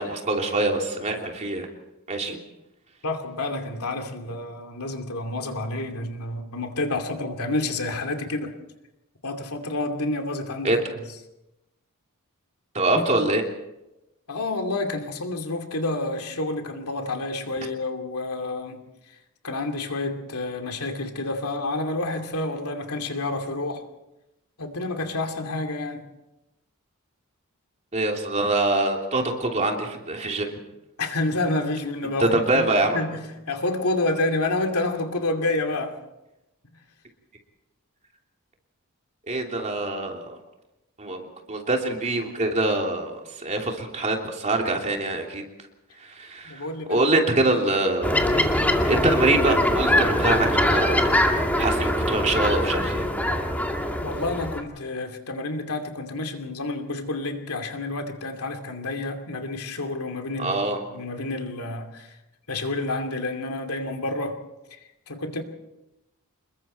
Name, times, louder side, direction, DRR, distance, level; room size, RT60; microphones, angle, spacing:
voice 1, 0.0-1.7 2.1-2.4 10.6-10.8 12.7-13.4 27.9-30.5 32.2-33.0 39.3-40.4 41.0-45.4 46.0-48.6 48.9-51.1 51.6-53.1 60.4-60.8, right 2 dB, 30° right, 2 dB, 3.1 m, -24 dB
voice 2, 3.0-8.5 9.2-10.7 14.3-18.8 19.4-23.9 24.6-26.1 31.0-36.0 46.4-47.1 54.0-62.2 62.5-64.4 64.7-64.8 65.1-65.4, left 2 dB, 80° left, 4 dB, 2.6 m, -29 dB
sound 1, 48.0-54.6, left 1 dB, 5° left, 2.2 m, -22 dB
27.5 x 22.0 x 4.5 m, 0.93 s
head